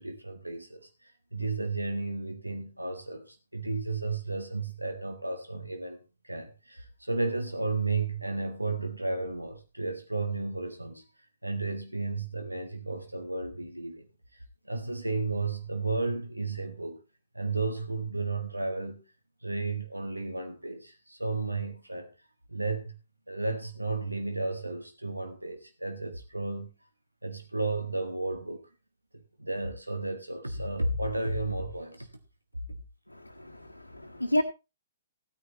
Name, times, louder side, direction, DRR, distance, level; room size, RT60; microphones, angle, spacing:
voice 1, 0.0-6.0 6.2-11.0 11.4-14.1 14.6-17.0 17.3-19.0 19.4-22.1 22.5-22.9 23.3-26.7 27.2-28.7 29.1-32.1, right 3 dB, 85° right, 1.6 m, -33 dB
voice 2, 33.1-34.4, left 1 dB, 90° left, 1.3 m, -31 dB
16.0 x 9.6 x 2.9 m
figure-of-eight pair, 120°, 0 cm